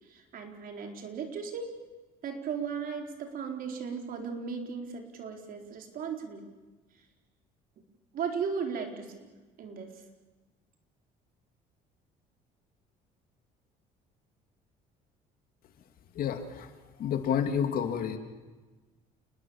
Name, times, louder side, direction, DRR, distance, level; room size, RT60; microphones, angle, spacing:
voice 1, 0.1-1.7 2.2-6.4 8.1-9.9, right 6 dB, 60° right, 3 dB, 4.4 m, -36 dB
voice 2, 16.1-16.7 17.0-18.2, left 8 dB, 60° left, 7 dB, 2.6 m, -29 dB
29.0 x 20.5 x 7.3 m, 1.3 s
cardioid pair, 100°, 17 cm